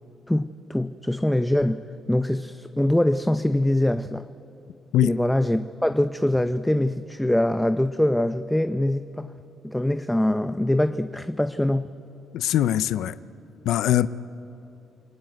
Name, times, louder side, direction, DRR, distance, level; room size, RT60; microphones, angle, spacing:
voice 1, 0.3-4.3 5.0-9.3 9.6-11.9, left 1 dB, 5° left, 0.6 m, -23 dB
voice 2, 12.3-13.2 13.6-14.1, left 12 dB, 85° left, 0.5 m, -22 dB
29.0 x 19.5 x 9.2 m
cardioid pair, 90°, 0 cm